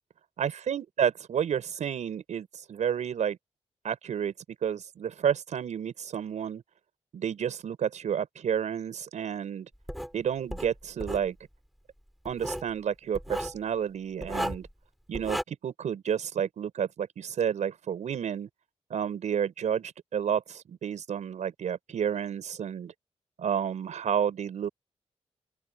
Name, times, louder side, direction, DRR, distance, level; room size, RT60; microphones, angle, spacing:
voice 1, 0.4-3.4 3.8-4.3 4.6-6.6 7.1-9.7 10.1-11.4 12.2-14.7 15.1-18.5 18.9-22.9 23.4-24.7, right 8 dB, 85° right, 6.7 m, -30 dB
Writing, 9.9-10.1 10.5-11.3 12.2-12.7 13.1-13.6 14.2-14.7 15.1-15.4, equal, ahead, 6.2 m, -34 dB
open air
cardioid pair, 75°, 12 cm